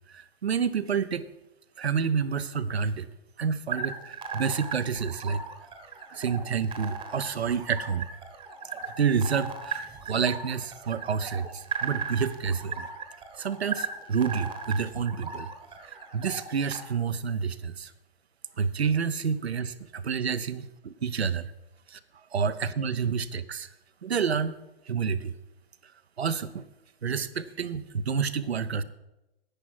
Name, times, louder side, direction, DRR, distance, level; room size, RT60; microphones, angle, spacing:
voice 1, 0.1-1.3 1.8-3.1 3.4-5.4 6.1-8.0 8.9-12.9 13.4-15.5 15.8-17.9 18.6-20.6 21.0-21.5 21.9-22.0 22.3-23.7 24.0-24.6 24.9-25.3 26.2-26.6 27.0-28.8, right 6 dB, 85° right, 13 dB, 0.8 m, -29 dB
sound 1, 3.7-16.8, right 6 dB, 15° right, 1.1 m, -37 dB
10.0 x 9.5 x 6.0 m, 0.95 s
hypercardioid pair, 120°, 31 cm